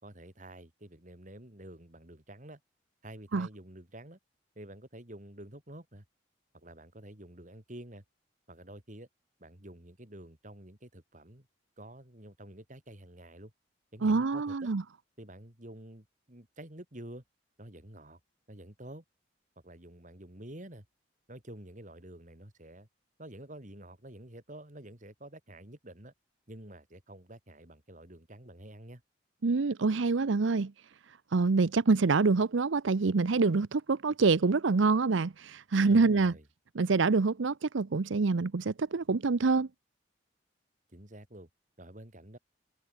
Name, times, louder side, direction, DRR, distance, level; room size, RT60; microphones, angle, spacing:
voice 1, 0.0-2.6 3.0-4.2 4.5-6.0 6.5-8.0 8.5-9.1 9.4-11.5 11.8-13.5 13.9-14.7 15.2-17.2 17.6-18.2 18.5-19.0 19.6-20.9 21.3-22.9 23.2-26.1 26.5-29.0 35.9-36.4 40.9-41.5 41.8-42.4, right 1 dB, 40° right, 3.4 m, -49 dB
voice 2, 14.0-14.8 29.4-30.7 31.1-36.3 36.7-39.7, right 4 dB, 80° right, 0.6 m, -26 dB
head